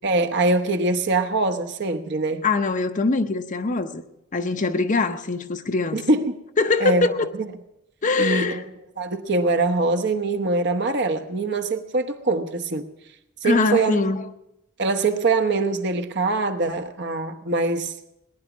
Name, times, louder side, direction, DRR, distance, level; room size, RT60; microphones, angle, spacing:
voice 1, 0.0-2.4 5.9-6.4 6.8-7.1 8.2-8.6 9.0-12.8 13.4-14.0 14.8-17.9, right 3 dB, 60° right, 1.1 m, -23 dB
voice 2, 2.4-4.0 4.3-6.0 6.6-7.3 8.0-8.6 13.4-14.3, left 3 dB, 40° left, 0.7 m, -22 dB
19.5 x 10.5 x 6.0 m
head